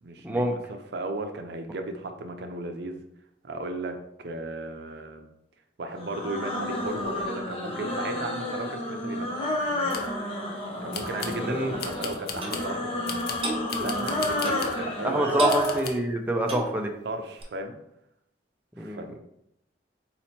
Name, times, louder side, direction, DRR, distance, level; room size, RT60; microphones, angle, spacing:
voice 1, 0.0-3.0 3.4-4.0 4.2-5.2 5.8-9.3 10.8-13.1 13.7-15.4 17.0-17.7 18.8-19.2, right 2 dB, 65° right, 6 dB, 0.5 m, -35 dB
sound 1, 6.0-15.9, left 1 dB, 35° left, 0.8 m, -30 dB
sound 2, 9.6-10.1 10.9-11.4 11.8-12.7 13.1-14.8 15.5-15.9, left 5 dB, 60° left, 0.6 m, -37 dB
Clock, 12.4-12.6 13.4-13.6 14.4-14.7 15.4-15.6 16.4-16.7 17.4-17.5, right 2 dB, 30° right, 1.1 m, -32 dB
voice 2, 15.0-16.9 18.8-19.0, right 1 dB, 10° right, 1 dB, 0.4 m, -26 dB
4.1 x 3.0 x 4.3 m, 0.80 s
head